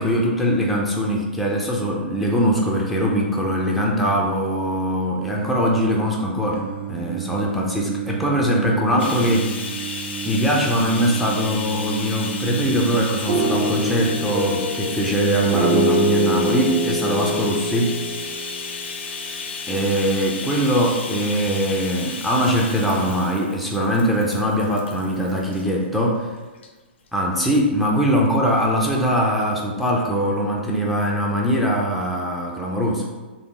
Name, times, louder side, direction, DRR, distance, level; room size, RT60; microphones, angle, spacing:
voice 1, 0.0-9.5 10.2-18.0 19.7-26.3 27.1-33.1, equal, ahead, -3 dB, 0.3 m, -21 dB
Singing, 6.5-13.1, right 12 dB, 75° right, 0.4 m, -32 dB
Bathtub (filling or washing), 9.0-25.6 26.6-26.7 27.1-27.2, left 5 dB, 75° left, 0.5 m, -33 dB
sound 1, 13.3-19.3, right 1 dB, 50° right, 0.8 m, -24 dB
3.5 x 2.1 x 3.7 m, 1.2 s
hypercardioid pair, 155°, 6 cm